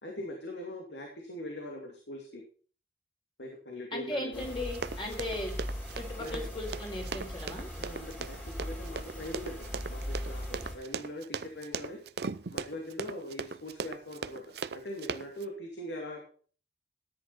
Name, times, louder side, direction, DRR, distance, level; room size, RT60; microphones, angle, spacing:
voice 1, 0.0-2.4 3.4-4.4 6.2-6.4 7.8-12.0 12.5-14.4 14.7-16.2, left 1 dB, 90° left, 1 dB, 2.3 m, -41 dB
voice 2, 3.9-5.5 5.9-7.7, left 1 dB, 25° left, 0 dB, 4.2 m, -37 dB
sound 1, 4.3-10.8, equal, 10° left, 3.2 m, -39 dB
Run, 4.7-15.4, right 5 dB, 70° right, 0.6 m, -38 dB
13.5 x 10.0 x 4.1 m, 0.42 s
head